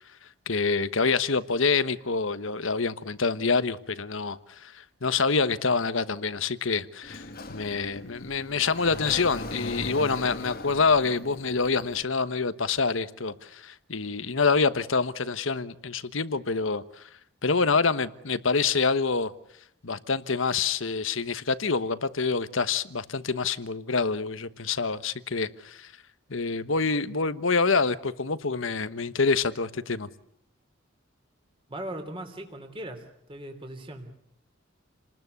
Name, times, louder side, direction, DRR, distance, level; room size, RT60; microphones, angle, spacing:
voice 1, 0.5-17.0 17.4-19.3 19.8-25.9 26.3-30.1, left 4 dB, 70° left, 1.2 m, -26 dB
Sliding door, 7.0-12.0, left 2 dB, 45° left, 1.5 m, -39 dB
voice 2, 31.7-34.1, right 1 dB, 25° right, 3.2 m, -39 dB
29.5 x 20.0 x 8.1 m
head